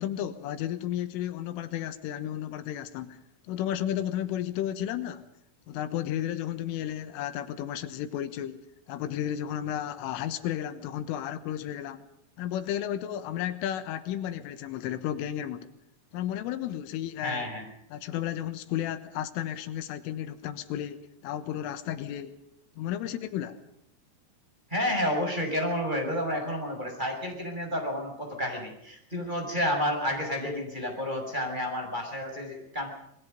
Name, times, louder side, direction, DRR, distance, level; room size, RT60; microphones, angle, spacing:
voice 1, 0.0-3.2 3.5-5.2 5.7-8.6 8.9-12.1 12.4-15.7 16.1-17.5 17.9-22.3 22.8-23.6, left 11 dB, 85° left, 11 dB, 3.9 m, -33 dB
voice 2, 17.2-17.6 24.7-32.9, equal, 10° right, 1 dB, 6.1 m, -30 dB
27.5 x 21.0 x 5.3 m, 0.75 s
omnidirectional pair, 5.6 m